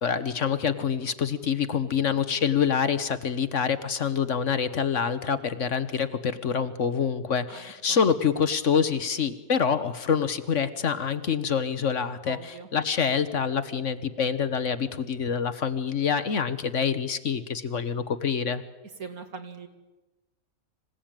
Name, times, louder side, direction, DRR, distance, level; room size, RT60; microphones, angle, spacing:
voice 1, 0.0-12.4 12.7-18.6, left 7 dB, 55° left, 12 dB, 1.3 m, -26 dB
voice 2, 7.5-8.0 12.2-12.7 19.0-19.7, right 5 dB, 70° right, 6 dB, 2.6 m, -41 dB
26.0 x 16.5 x 8.9 m, 1.2 s
omnidirectional pair, 1.6 m